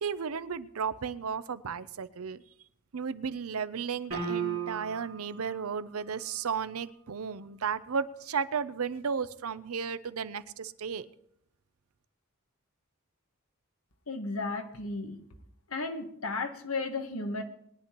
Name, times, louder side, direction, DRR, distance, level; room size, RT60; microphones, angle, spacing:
voice 1, 0.0-2.4 2.9-11.1, right 6 dB, 90° right, 14 dB, 0.6 m, -34 dB
sound 1, 4.1-5.2, right 6 dB, 70° right, 2.7 m, -33 dB
voice 2, 14.1-15.2 15.7-17.4, left 3 dB, 90° left, 5 dB, 1.5 m, -34 dB
21.5 x 10.0 x 3.0 m, 0.71 s
head